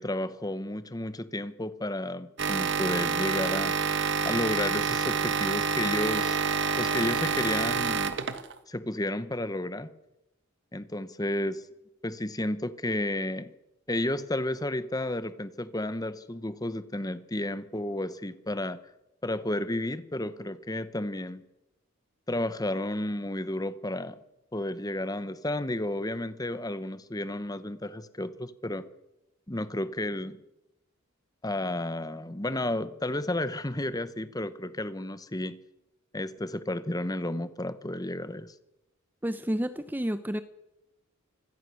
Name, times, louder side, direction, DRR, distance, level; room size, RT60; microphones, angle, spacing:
voice 1, 0.0-3.7 4.2-6.4 6.8-8.2 8.7-9.9 10.7-11.6 12.0-13.5 13.9-18.8 19.2-21.4 22.3-24.2 24.5-28.8 29.5-30.4 31.4-35.6 36.1-38.5, left 1 dB, 20° left, 13 dB, 1.0 m, -32 dB
sound 1, 2.4-8.6, right 5 dB, 55° right, 1.4 m, -28 dB
voice 2, 39.2-40.4, equal, 10° right, 11 dB, 0.7 m, -30 dB
24.5 x 16.5 x 6.4 m, 0.92 s
head